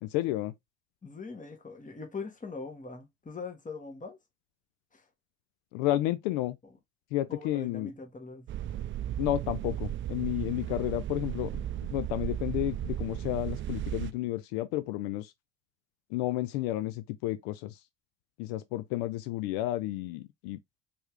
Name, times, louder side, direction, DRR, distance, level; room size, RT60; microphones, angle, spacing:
voice 1, 0.0-0.5 5.7-6.6 7.1-7.9 9.2-11.6 11.9-15.3 16.1-17.8 18.4-20.6, left 15 dB, 55° left, 0.6 m, -31 dB
voice 2, 1.0-4.2 4.9-5.0 7.3-8.5, left 4 dB, 20° left, 1.5 m, -41 dB
sound 1, 8.5-14.1, right 12 dB, 30° right, 0.4 m, -35 dB
4.4 x 3.5 x 3.2 m
figure-of-eight pair, 50°, 43 cm